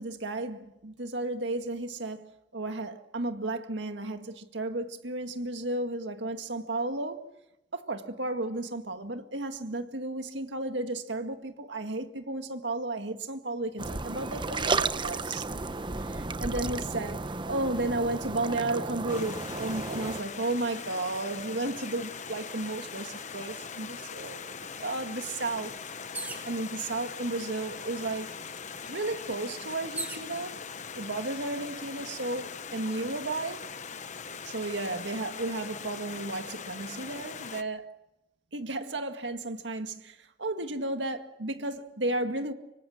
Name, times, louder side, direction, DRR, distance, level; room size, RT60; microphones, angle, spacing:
voice 1, 0.0-7.3 7.7-15.5 16.1-25.7 26.4-28.3 28.9-30.5 30.9-33.7 34.4-37.9 38.5-42.5, right 2 dB, 85° right, 1.9 m, -33 dB
sound 1, 13.8-20.2, right 3 dB, 25° right, 0.9 m, -33 dB
Stream, 19.1-37.6, left 6 dB, 40° left, 1.1 m, -41 dB
sound 2, 26.1-26.6 27.5-27.6 27.9-30.3 31.1-31.6, right 2 dB, 10° right, 2.6 m, -40 dB
25.5 x 25.0 x 6.5 m
head